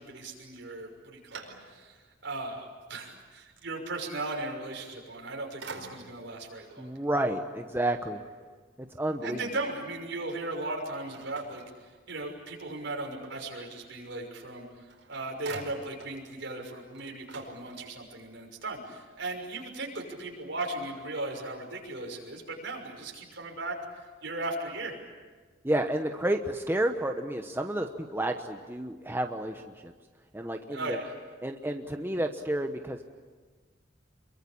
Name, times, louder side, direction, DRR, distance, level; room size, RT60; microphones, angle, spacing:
voice 1, 0.0-2.0 2.2-6.9 9.2-11.6 12.1-23.8 24.2-25.0 30.7-31.1, right 2 dB, 65° right, 1 dB, 6.2 m, -37 dB
sound 1, 0.7-2.1 2.6-2.7 5.0-5.3 5.6-6.4 11.1-12.4 14.5-14.6 14.9-16.2 16.6-16.7 16.9-18.2, right 3 dB, 80° right, 4.7 m, -46 dB
voice 2, 6.8-8.2 8.8-9.4 25.6-29.9 30.3-31.0 31.4-33.0, right 1 dB, 10° right, 4 dB, 1.0 m, -30 dB
27.5 x 23.0 x 8.7 m, 1.4 s
head